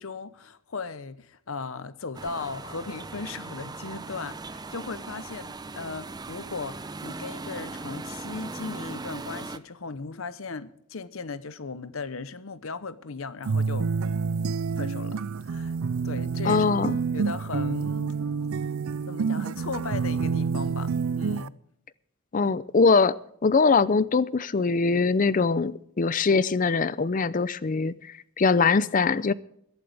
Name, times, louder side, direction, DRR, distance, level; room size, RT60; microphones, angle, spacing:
voice 1, 0.0-13.9 14.8-15.7 16.0-16.7 17.1-18.1 19.1-21.5, left 4 dB, 70° left, 0.8 m, -37 dB
sound 1, 2.1-9.6, right 3 dB, 20° right, 0.5 m, -39 dB
sound 2, 13.5-21.5, right 5 dB, 70° right, 0.5 m, -28 dB
voice 2, 16.4-17.0 22.3-29.3, left 4 dB, 40° left, 0.5 m, -22 dB
21.5 x 11.5 x 3.4 m
head